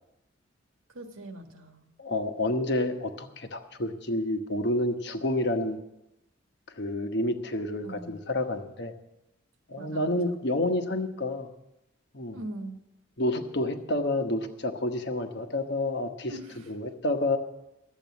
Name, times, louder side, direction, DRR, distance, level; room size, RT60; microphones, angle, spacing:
voice 1, 0.9-1.9 7.8-8.2 9.8-10.1 12.3-12.8 16.3-16.7, right 1 dB, 85° right, 6 dB, 1.6 m, -41 dB
voice 2, 2.0-5.8 6.8-8.9 9.7-11.5 12.1-12.4 13.2-16.3 16.7-17.4, left 1 dB, 55° left, 7 dB, 1.1 m, -29 dB
12.5 x 8.3 x 8.2 m, 0.88 s
head